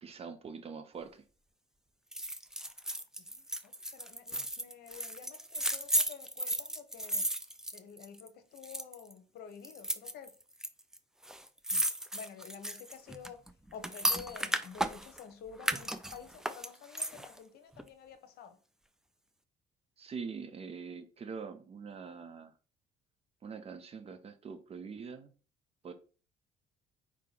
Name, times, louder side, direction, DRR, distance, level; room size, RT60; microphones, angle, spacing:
voice 1, 0.0-1.2 20.0-22.5 23.4-25.3 25.8-25.9, right 5 dB, 35° right, 0.7 m, -44 dB
sound 1, 2.1-8.3 8.6-9.1 9.6-10.7 10.9-11.0 11.2-15.2 15.6-17.4 17.8-17.9, right 1 dB, 5° right, 0.3 m, -34 dB
voice 2, 3.2-7.3 7.7-10.3 11.7-11.8 12.1-13.4 13.7-18.6, left 7 dB, 70° left, 0.9 m, -50 dB
4.8 x 2.8 x 3.9 m
cardioid pair, 110°, 17 cm